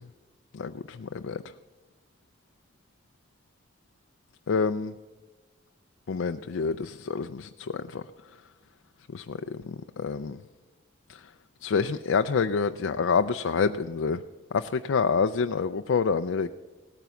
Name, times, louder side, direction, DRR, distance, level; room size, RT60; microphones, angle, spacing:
voice 1, 0.5-1.4 4.5-4.9 6.1-8.0 9.1-10.4 11.6-14.2 14.5-16.5, left 5 dB, 85° left, 8 dB, 0.4 m, -27 dB
17.5 x 9.2 x 7.0 m, 1.2 s
head